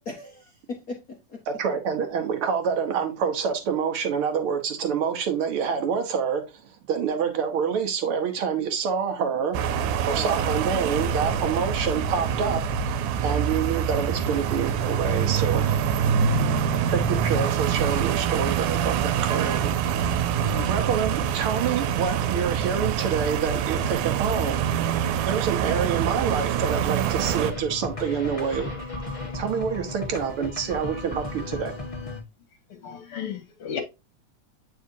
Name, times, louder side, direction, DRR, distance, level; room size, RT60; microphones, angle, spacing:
voice 1, 0.0-1.4 10.1-10.4 16.4-16.8 20.4-20.7, left 3 dB, 75° left, 0.8 m, -38 dB
voice 2, 1.6-9.6 10.1-12.9 13.2-15.7 16.9-19.8 20.7-24.6 25.2-28.7 29.3-31.7, right 6 dB, 60° right, 1.5 m, -27 dB
sound 1, 9.5-27.5, right 7 dB, 90° right, 2.2 m, -25 dB
sound 2, 27.0-32.2, left 2 dB, 35° left, 0.5 m, -35 dB
voice 3, 32.7-33.8, left 7 dB, 55° left, 2.1 m, -34 dB
8.6 x 4.9 x 2.7 m
omnidirectional pair, 3.5 m